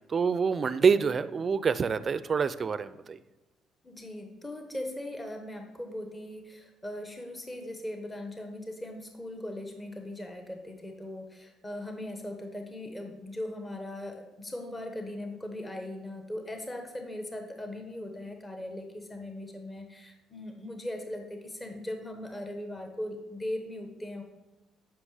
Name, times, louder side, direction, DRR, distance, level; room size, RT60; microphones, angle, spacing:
voice 1, 0.1-3.2, right 5 dB, 40° right, 15 dB, 0.4 m, -26 dB
voice 2, 3.8-24.2, left 1 dB, 20° left, 4 dB, 1.2 m, -39 dB
8.5 x 5.7 x 4.9 m, 1.1 s
supercardioid pair, 80°, 0 cm